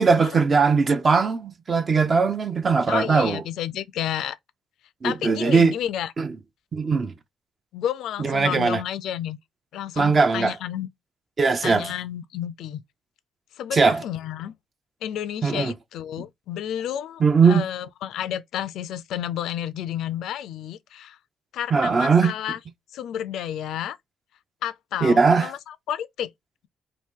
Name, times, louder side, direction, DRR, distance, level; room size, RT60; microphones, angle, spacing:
voice 1, 0.0-3.4 5.0-5.8 6.2-6.4 6.7-7.1 8.2-8.8 10.0-10.5 11.4-11.9 13.7-14.0 15.4-15.7 17.2-17.7 21.7-22.3 25.0-25.5, right 4 dB, 40° right, 0.6 m, -20 dB
voice 2, 2.9-4.4 5.0-6.1 7.7-9.4 9.7-10.9 11.6-12.8 13.6-14.5 15.0-21.2 21.5-22.6 22.9-24.0 24.6-26.3, left 10 dB, 80° left, 0.3 m, -31 dB
2.9 x 2.6 x 3.6 m
cardioid pair, 90°, 0 cm